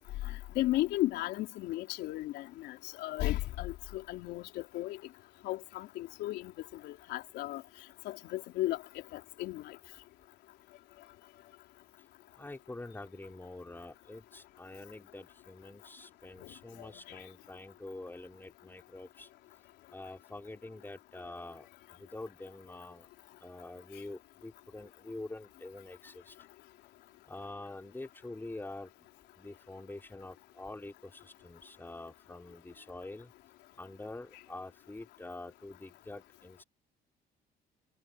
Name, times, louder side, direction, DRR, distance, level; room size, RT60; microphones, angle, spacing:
voice 1, 0.3-5.0 5.4-6.5 6.8-7.6 8.1-8.8 9.1-9.8 17.1-17.2, left 16 dB, 85° left, 4.0 m, -35 dB
voice 2, 12.4-19.3 19.9-23.1 23.4-26.5 27.3-28.9 29.4-33.3 33.8-36.6, left 2 dB, 10° left, 5.3 m, -46 dB
cardioid pair, 110°, 17 cm